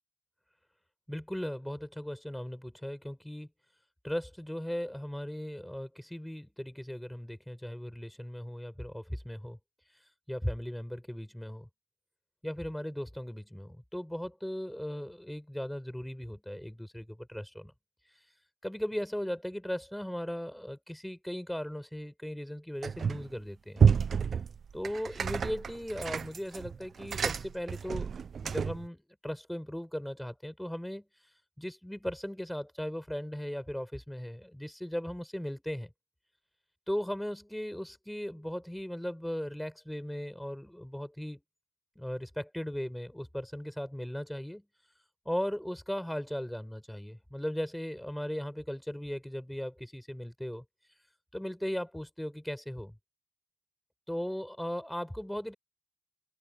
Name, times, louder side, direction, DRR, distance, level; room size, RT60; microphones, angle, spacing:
voice 1, 1.1-3.5 4.0-9.6 10.3-11.7 12.4-17.7 18.6-24.0 24.7-28.1 28.4-31.0 31.6-35.9 36.9-41.4 41.9-44.6 45.2-50.6 51.3-52.9 54.1-55.5, equal, 5° left, 5.0 m, -37 dB
sound 1, 22.8-23.3 23.8-28.9, right 6 dB, 55° right, 0.9 m, -29 dB
supercardioid pair, 50°, 0 cm